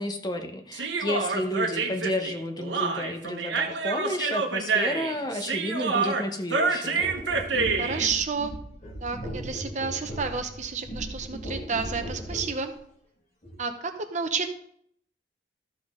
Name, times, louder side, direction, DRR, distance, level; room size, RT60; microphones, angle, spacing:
voice 1, 0.0-7.0, left 1 dB, 25° left, 5 dB, 0.9 m, -31 dB
Human voice, 0.7-8.1, right 4 dB, 80° right, 1.1 m, -27 dB
sound 1, 7.0-12.6 13.4-13.6, right 1 dB, 40° left, 2.0 m, -37 dB
voice 2, 7.8-8.6 9.0-12.7 13.6-14.5, right 5 dB, 40° right, 7 dB, 0.8 m, -30 dB
13.5 x 6.0 x 3.7 m, 0.67 s
head